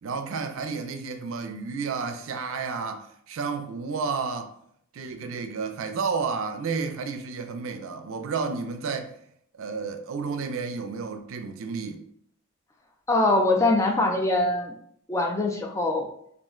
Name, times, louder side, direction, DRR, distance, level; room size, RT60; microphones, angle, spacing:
voice 1, 0.0-4.5 4.9-9.1 9.6-12.0, right 5 dB, 65° right, 0.4 m, -31 dB
voice 2, 13.1-14.7 15.1-16.1, left 2 dB, 15° left, 0.3 m, -23 dB
2.4 x 2.1 x 3.6 m
head